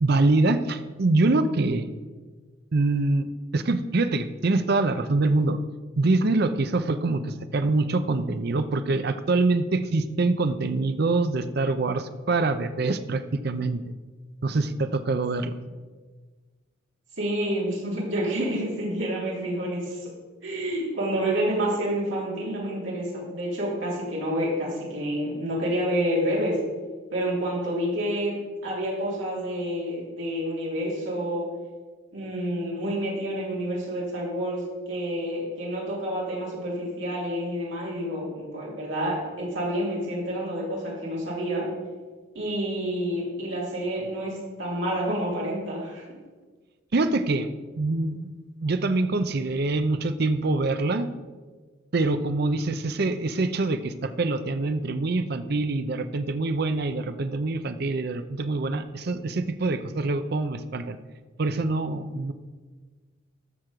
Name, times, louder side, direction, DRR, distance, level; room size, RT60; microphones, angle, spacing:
voice 1, 0.0-1.9 2.7-5.6 6.0-13.8 14.4-15.5 46.9-47.5 47.7-51.1 51.9-61.0 61.4-62.3, right 2 dB, 55° right, 10 dB, 0.6 m, -25 dB
voice 2, 17.2-20.1 20.4-26.6 27.1-31.5 32.1-41.7 42.3-46.0, equal, 70° right, -5 dB, 3.3 m, -28 dB
13.0 x 6.1 x 4.9 m, 1.4 s
head